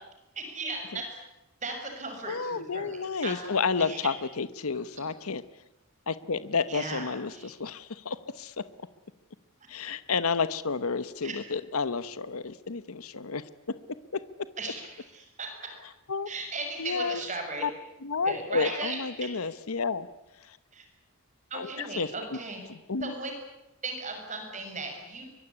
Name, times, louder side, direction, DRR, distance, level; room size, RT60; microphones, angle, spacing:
voice 1, 0.3-1.2 1.6-4.0 6.7-7.5 11.2-11.3 14.6-15.5 16.3-17.6 18.2-19.3 20.7-20.8 21.5-22.6 23.0-23.3 23.8-25.2, right 3 dB, 35° right, 4 dB, 6.6 m, -37 dB
voice 2, 2.3-5.4 6.1-8.6 9.7-13.4 14.1-14.2 16.1-16.3 16.8-17.2 17.6-17.7 18.0-20.1 20.5-20.6 21.5-22.1 22.7-23.1, left 5 dB, 80° left, 15 dB, 0.9 m, -31 dB
24.0 x 23.0 x 9.9 m, 0.95 s
head